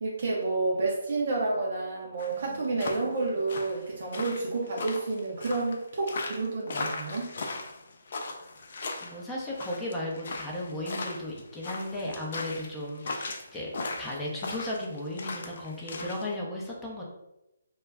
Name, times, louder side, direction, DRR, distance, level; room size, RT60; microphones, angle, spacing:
voice 1, 0.0-7.3, right 3 dB, 55° right, -3 dB, 0.5 m, -30 dB
sound 1, 2.2-16.2, left 3 dB, 55° left, 0.4 m, -38 dB
voice 2, 2.3-3.0 9.0-17.0, left 1 dB, 10° left, -5 dB, 0.6 m, -36 dB
2.3 x 2.0 x 3.4 m, 0.92 s
hypercardioid pair, 155°, 0 cm